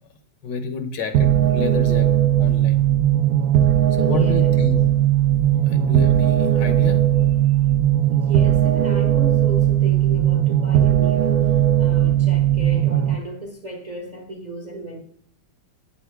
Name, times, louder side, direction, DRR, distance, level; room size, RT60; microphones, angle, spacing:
voice 1, 0.4-2.8 4.0-4.9 5.4-7.0, left 3 dB, 75° left, 8 dB, 1.7 m, -29 dB
sound 1, 1.1-13.1, right 11 dB, 70° right, 0.9 m, -18 dB
voice 2, 3.9-4.6 8.1-15.0, right 1 dB, 30° right, 3 dB, 1.0 m, -35 dB
8.9 x 7.1 x 4.7 m, 0.63 s
omnidirectional pair, 1.9 m